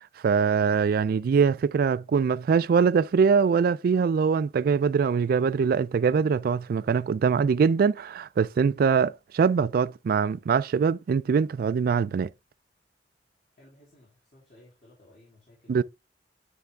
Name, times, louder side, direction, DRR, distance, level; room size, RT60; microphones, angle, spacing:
voice 1, 0.2-12.3 15.7-15.8, right 6 dB, 55° right, 0.3 m, -23 dB
voice 2, 1.1-1.5 13.5-15.8, left 1 dB, 50° left, 2.9 m, -57 dB
9.4 x 3.4 x 3.4 m
head